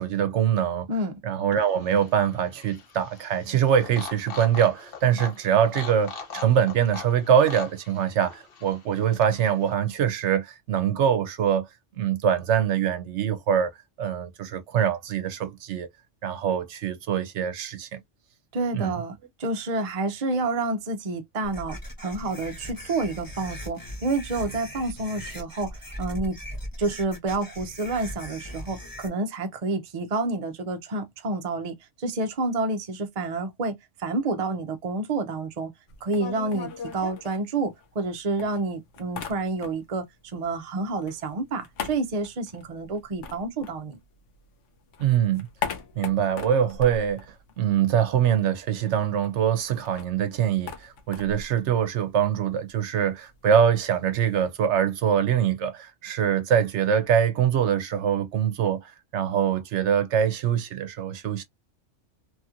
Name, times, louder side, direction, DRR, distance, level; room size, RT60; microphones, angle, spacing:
voice 1, 0.0-0.9 1.2-11.7 11.9-13.7 14.0-15.9 16.2-18.0 18.7-19.0 45.0-45.5 46.0-47.2 47.6-61.4, right 8 dB, 70° right, 0.9 m, -24 dB
voice 2, 0.9-1.2 18.5-26.4 26.8-35.7 36.0-40.1 40.3-44.0, right 3 dB, 40° right, 0.5 m, -29 dB
sound 1, 1.6-9.7, left 6 dB, 55° left, 0.9 m, -42 dB
sound 2, 21.4-29.1, equal, 20° left, 0.9 m, -39 dB
sound 3, 35.9-38.1 38.4-40.0 40.3-44.4 44.8-48.1 48.3-48.4 48.7-54.5, left 6 dB, 80° left, 1.0 m, -40 dB
3.1 x 2.8 x 2.4 m
omnidirectional pair, 1.3 m